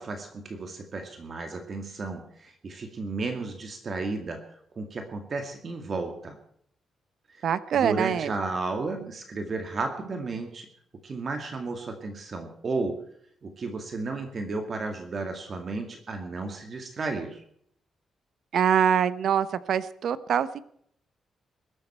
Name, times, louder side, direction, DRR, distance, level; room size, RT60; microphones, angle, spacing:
voice 1, 0.0-6.4 7.3-10.7 11.0-13.0 13.4-17.4, right 3 dB, 35° right, 5 dB, 2.2 m, -33 dB
voice 2, 7.4-8.3 18.5-20.6, right 8 dB, 60° right, 15 dB, 1.0 m, -24 dB
22.0 x 12.5 x 4.5 m, 0.66 s
wide cardioid pair, 170°, 0 cm